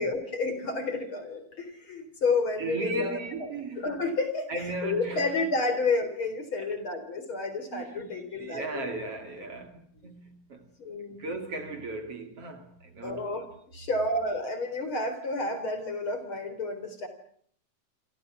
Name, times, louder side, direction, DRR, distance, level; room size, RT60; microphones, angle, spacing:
voice 1, 0.0-3.5 3.8-8.9 10.0-10.1 10.8-11.3 13.0-17.1, left 3 dB, 40° left, 4.6 m, -30 dB
voice 2, 2.6-4.0 4.5-5.3 6.6-6.7 7.7-10.7 11.1-13.5, right 2 dB, 45° right, 3.2 m, -37 dB
27.5 x 27.0 x 6.2 m
omnidirectional pair, 3.8 m